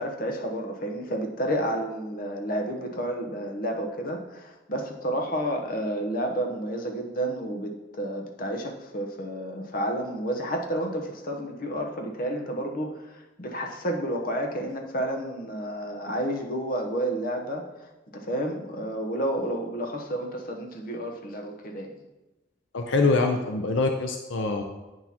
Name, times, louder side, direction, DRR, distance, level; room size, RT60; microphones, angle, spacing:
voice 1, 0.0-17.6 18.1-21.9, right 1 dB, 50° left, 2 dB, 0.9 m, -30 dB
voice 2, 22.7-24.6, left 3 dB, 80° left, 4 dB, 0.6 m, -24 dB
8.7 x 6.2 x 2.9 m, 1.1 s
head